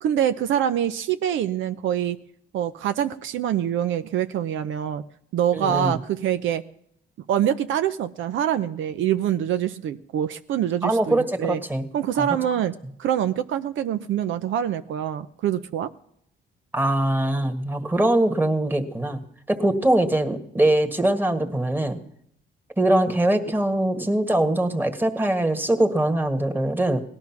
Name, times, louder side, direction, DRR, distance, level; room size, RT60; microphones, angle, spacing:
voice 1, 0.0-2.2 2.5-5.0 5.3-6.6 7.3-11.6 11.9-12.7 13.0-15.9, right 10 dB, 75° right, 10 dB, 0.7 m, -25 dB
voice 2, 5.5-6.0 10.8-11.9 12.2-12.3 16.7-22.0 22.8-27.0, right 1 dB, 10° right, 6 dB, 1.7 m, -22 dB
18.0 x 11.5 x 5.9 m, 0.71 s
cardioid pair, 90°, 20 cm